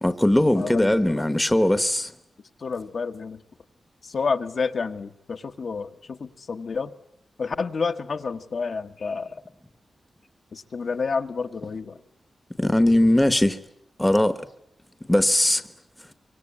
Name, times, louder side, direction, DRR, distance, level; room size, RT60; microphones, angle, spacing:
voice 1, 0.0-2.1 12.6-13.6 14.0-14.5 15.1-15.6, left 1 dB, 10° left, 1.1 m, -20 dB
voice 2, 0.5-1.2 2.6-3.4 4.0-6.9 7.4-9.4 10.5-12.0, left 5 dB, 55° left, 1.3 m, -29 dB
25.0 x 24.0 x 8.6 m
wide cardioid pair, 150°, 0 cm